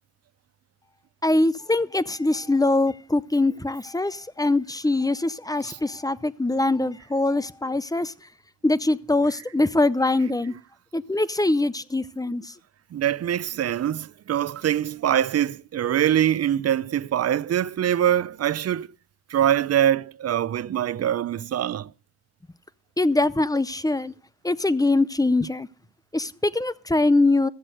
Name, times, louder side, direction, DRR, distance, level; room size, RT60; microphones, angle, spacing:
voice 1, 1.2-8.1 8.6-10.5 10.9-12.5 23.0-24.1 24.4-25.7 26.1-27.5, left 2 dB, 10° left, 0.6 m, -23 dB
voice 2, 12.9-18.9 19.3-21.9, right 10 dB, 40° right, 0.5 m, -23 dB
14.0 x 7.4 x 6.5 m
cardioid pair, 75°, 40 cm